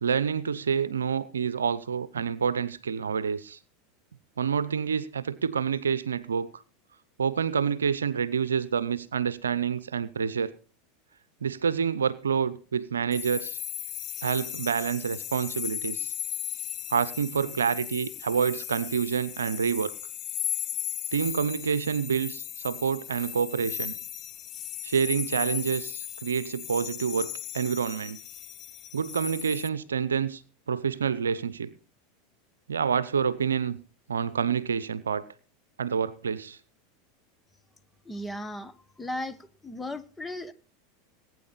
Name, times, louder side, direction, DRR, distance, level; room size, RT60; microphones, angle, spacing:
voice 1, 0.0-3.6 4.4-6.6 7.2-10.5 11.4-13.6 14.2-16.1 16.9-19.9 21.1-24.0 24.8-28.2 28.9-30.4 30.7-31.7 32.7-33.8 34.1-35.2 35.8-36.6, right 7 dB, 85° right, 17 dB, 0.7 m, -28 dB
sound 1, 13.1-29.7, left 12 dB, 40° left, 0.8 m, -36 dB
voice 2, 38.0-40.5, left 1 dB, 15° left, 11 dB, 1.3 m, -36 dB
20.0 x 9.4 x 4.0 m, 0.37 s
hypercardioid pair, 90°, 0 cm